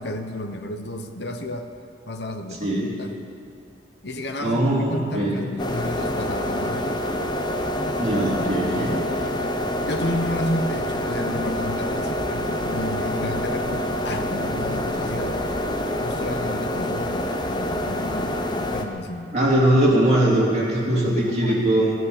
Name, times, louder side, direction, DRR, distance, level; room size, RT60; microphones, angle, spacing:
voice 1, 0.0-1.7 2.1-3.1 4.0-7.0 8.7-9.4 9.8-15.4 16.0-18.4 18.7-19.3 20.8-21.8, left 1 dB, 70° left, 6 dB, 1.0 m, -32 dB
voice 2, 4.4-5.4 8.0-8.9 19.3-21.9, right 1 dB, 40° right, -6 dB, 3.2 m, -20 dB
sound 1, 5.6-18.8, left 1 dB, 25° left, 0.8 m, -26 dB
14.0 x 9.7 x 7.1 m, 2.4 s
head